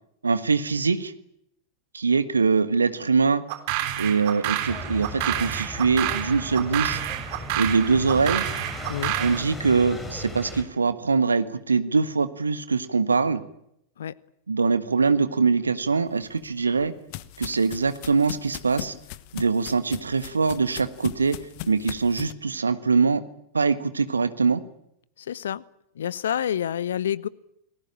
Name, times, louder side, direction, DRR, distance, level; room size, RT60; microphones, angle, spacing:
voice 1, 0.2-1.1 1.9-3.4 4.0-7.0 7.5-8.4 9.2-13.4 14.5-16.9 17.4-18.9 19.3-21.4 21.7-23.2 23.5-24.6, right 4 dB, 75° right, 12 dB, 1.6 m, -23 dB
sound 1, 3.5-9.4, right 13 dB, 50° right, 3.8 m, -29 dB
sound 2, 4.7-10.6, left 1 dB, 10° left, 5.6 m, -37 dB
sound 3, 16.2-22.3, left 16 dB, 45° left, 1.2 m, -39 dB
voice 2, 25.2-25.6 25.9-27.3, left 9 dB, 65° left, 22 dB, 0.9 m, -28 dB
29.0 x 20.0 x 9.0 m, 0.78 s
figure-of-eight pair, 90°, 0 cm